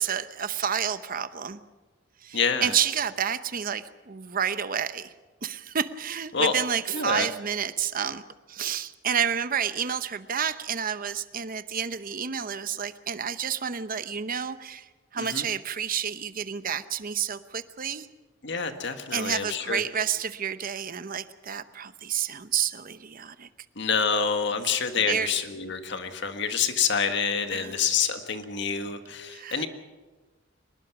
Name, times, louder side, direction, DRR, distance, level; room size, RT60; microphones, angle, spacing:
voice 1, 0.0-1.6 2.2-5.1 5.4-8.2 8.5-18.1 19.1-23.5 25.1-25.3 27.5-27.9 29.3-29.7, right 8 dB, 45° right, 12 dB, 0.8 m, -30 dB
voice 2, 2.3-2.7 6.3-6.5 6.9-7.3 15.2-15.4 18.4-19.8 23.8-29.7, left 6 dB, 60° left, 7 dB, 1.7 m, -27 dB
23.5 x 20.0 x 6.0 m, 1.3 s
head